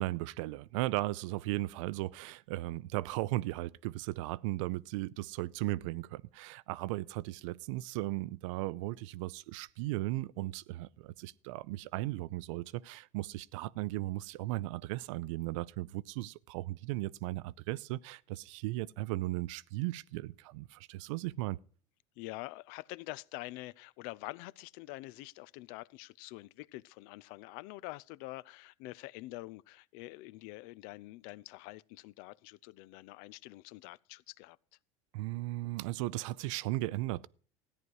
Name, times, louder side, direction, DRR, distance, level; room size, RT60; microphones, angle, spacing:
voice 1, 0.0-21.6 35.1-37.3, right 18 dB, 80° right, 0.5 m, -36 dB
voice 2, 22.2-34.6, left 20 dB, 65° left, 0.5 m, -46 dB
14.0 x 9.5 x 4.6 m
supercardioid pair, 105°, 16 cm